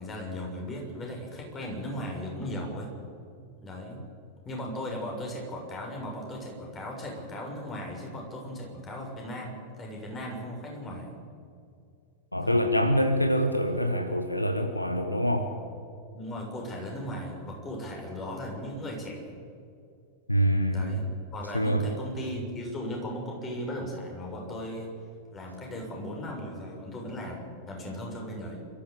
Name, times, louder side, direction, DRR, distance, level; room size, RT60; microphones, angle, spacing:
voice 1, 0.0-2.9 3.6-4.0 4.4-11.2 12.4-12.7 16.1-19.4 20.6-24.9 25.3-28.6, equal, 25° left, 0 dB, 6.8 m, -37 dB
voice 2, 12.3-15.5 20.3-21.0 21.5-21.8, equal, 85° left, 7 dB, 1.4 m, -25 dB
28.5 x 14.0 x 8.3 m, 2.4 s
figure-of-eight pair, 90°, 0 cm